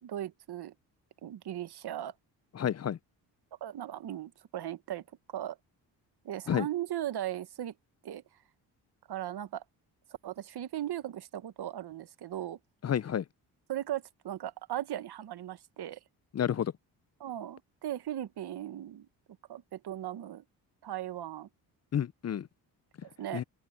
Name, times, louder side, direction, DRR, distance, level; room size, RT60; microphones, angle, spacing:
voice 1, 0.0-0.7 1.2-2.1 3.6-5.0 5.3-5.6 6.2-7.7 8.0-8.2 9.1-9.6 10.2-12.6 13.7-16.0 17.2-19.1 19.5-20.4 20.8-21.5 23.0-23.4, right 12 dB, 60° right, 1.4 m, -37 dB
voice 2, 2.5-3.0 6.5-6.7 12.8-13.2 16.3-16.7 21.9-22.5 23.3-23.4, left 9 dB, 35° left, 0.6 m, -30 dB
supercardioid pair, 60°, 44 cm